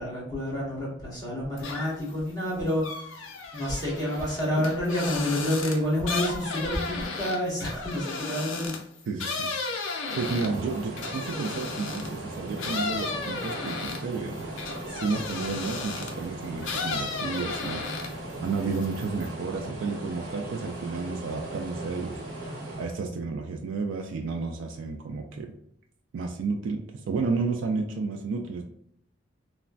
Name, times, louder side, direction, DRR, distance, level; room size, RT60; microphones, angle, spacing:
voice 1, 0.0-2.8 3.5-8.7, left 1 dB, 20° left, -7 dB, 1.2 m, -28 dB
sound 1, 1.6-2.1 2.4-12.2 12.6-16.2 16.6-18.3 18.6-19.3, left 4 dB, 75° left, 0.5 m, -34 dB
voice 2, 9.1-9.8 10.2-14.6 14.8-22.5 22.8-25.5 26.1-28.6, right 4 dB, 80° right, 2 dB, 0.3 m, -32 dB
sound 2, 10.0-23.0, right 1 dB, 55° right, 1.1 m, -38 dB
3.1 x 2.1 x 2.5 m, 0.72 s
head